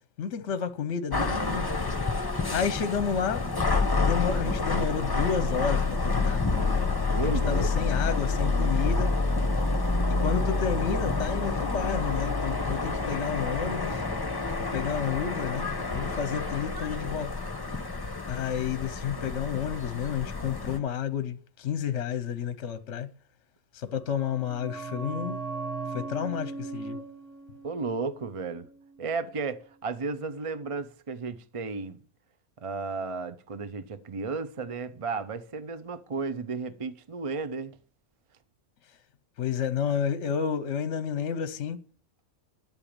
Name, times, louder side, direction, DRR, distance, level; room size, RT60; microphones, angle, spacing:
voice 1, 0.2-1.7 2.5-3.4 4.0-6.7 7.2-9.1 10.2-14.0 14.6-17.3 18.3-23.1 23.7-25.4 25.9-27.0 39.4-41.8, left 7 dB, 60° left, 1.0 m, -31 dB
sound 1, 1.1-20.8, left 3 dB, 20° left, 1.0 m, -28 dB
voice 2, 7.1-7.7 27.6-28.7 29.0-32.0 32.6-37.8, right 4 dB, 35° right, 0.6 m, -33 dB
sound 2, 23.9-29.4 29.6-29.7, right 4 dB, 60° right, 1.8 m, -39 dB
11.0 x 8.1 x 8.7 m
omnidirectional pair, 1.5 m